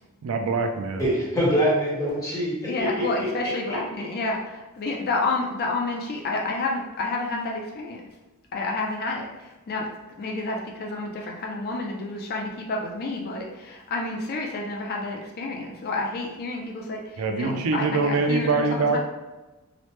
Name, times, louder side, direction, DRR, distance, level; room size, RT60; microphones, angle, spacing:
voice 1, 0.2-1.0 17.2-19.0, right 4 dB, 75° right, 0.4 m, -24 dB
voice 2, 1.0-3.8, equal, 15° left, 1.0 m, -25 dB
voice 3, 2.7-8.0 8.5-9.9 10.2-19.0, left 2 dB, 45° left, 0.4 m, -29 dB
2.9 x 2.0 x 3.1 m
head